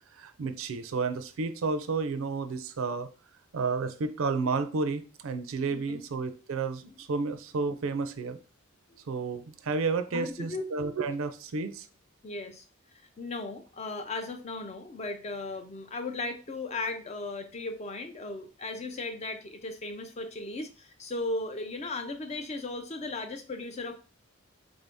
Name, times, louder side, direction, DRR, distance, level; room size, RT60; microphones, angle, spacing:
voice 1, 0.1-3.1 3.5-8.4 9.1-11.9, right 4 dB, 70° right, 10 dB, 0.4 m, -31 dB
voice 2, 5.7-6.0 8.9-9.0 10.1-10.6 12.2-12.7 13.2-24.0, left 2 dB, 30° left, 7 dB, 0.4 m, -36 dB
3.6 x 2.6 x 3.4 m, 0.34 s
head